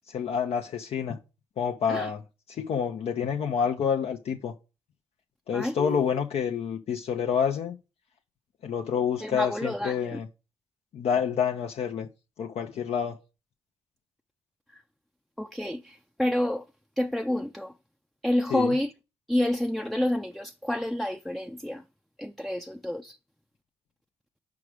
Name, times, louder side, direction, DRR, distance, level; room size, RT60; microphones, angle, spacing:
voice 1, 0.1-1.2 1.6-2.2 2.5-4.5 5.5-7.7 8.6-10.3 10.9-12.1 12.4-13.2 18.5-18.7, left 7 dB, 75° left, 0.6 m, -28 dB
voice 2, 5.5-6.2 9.2-10.2 14.7-14.8 15.4-16.7 17.0-17.7 18.2-18.9 19.3-21.8 22.2-23.2, left 1 dB, ahead, 0.4 m, -29 dB
4.9 x 4.8 x 6.3 m
cardioid pair, 65°, 10 cm